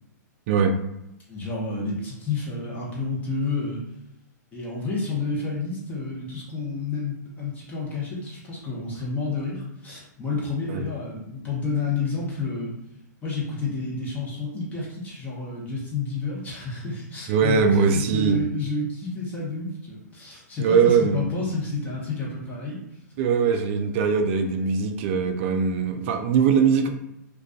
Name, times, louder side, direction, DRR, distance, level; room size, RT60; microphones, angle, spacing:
voice 1, 1.3-3.8 4.5-12.7 13.2-17.6 17.9-22.8, left 3 dB, 15° left, -5 dB, 0.7 m, -30 dB
voice 2, 17.3-18.4 20.6-21.3 23.2-26.9, right 6 dB, 40° right, 5 dB, 0.3 m, -21 dB
2.5 x 2.3 x 2.3 m, 0.85 s
hypercardioid pair, 140°, 10 cm